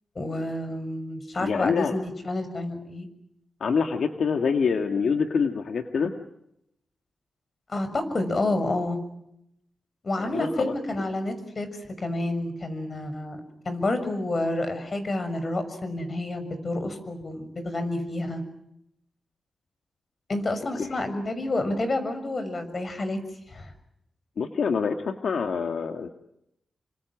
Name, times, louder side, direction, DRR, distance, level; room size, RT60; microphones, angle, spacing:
voice 1, 0.1-3.1 7.7-9.0 10.0-11.7 12.0-13.4 13.6-18.4 20.3-23.2 23.5-23.7, left 2 dB, 45° left, 10 dB, 6.3 m, -29 dB
voice 2, 1.4-1.9 3.6-6.1 10.2-11.1 20.8-21.0 24.4-26.1, left 5 dB, 80° left, 5 dB, 1.9 m, -26 dB
29.5 x 26.5 x 6.2 m, 0.80 s
cardioid pair, 75°, 0 cm